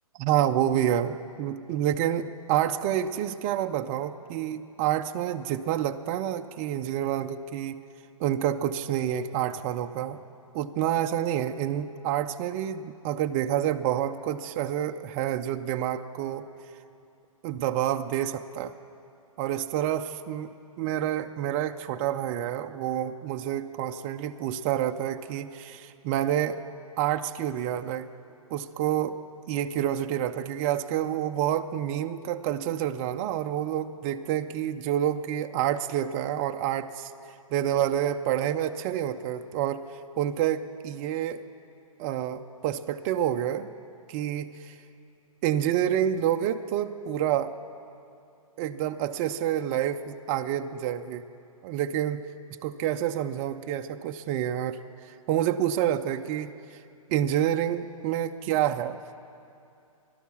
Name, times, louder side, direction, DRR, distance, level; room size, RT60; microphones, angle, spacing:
voice 1, 0.2-7.8 8.2-10.2 10.5-16.5 17.4-18.7 19.4-20.5 20.8-26.6 27.0-28.1 28.5-37.1 37.5-41.4 42.0-43.7 44.1-44.7 45.4-47.5 48.6-51.3 51.6-52.2 52.6-56.8 57.1-59.0, right 11 dB, 25° right, 6 dB, 0.4 m, -28 dB
17.0 x 12.0 x 7.0 m, 2.6 s
hypercardioid pair, 135°, 19 cm